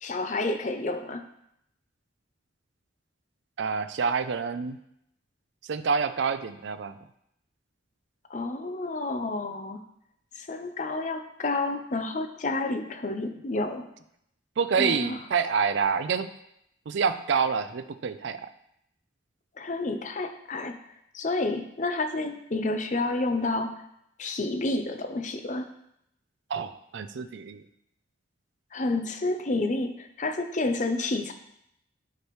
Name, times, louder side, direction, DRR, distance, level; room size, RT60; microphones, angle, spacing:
voice 1, 0.0-1.2 8.3-9.8 10.3-13.9 14.8-15.2 19.6-20.8 21.1-23.7 24.2-25.7 28.7-31.3, left 2 dB, 40° left, 7 dB, 0.6 m, -29 dB
voice 2, 3.6-4.8 5.6-7.0 14.6-16.3 16.9-18.5 26.5-27.6, right 6 dB, 70° right, 12 dB, 0.4 m, -27 dB
9.2 x 4.9 x 3.1 m, 0.76 s
head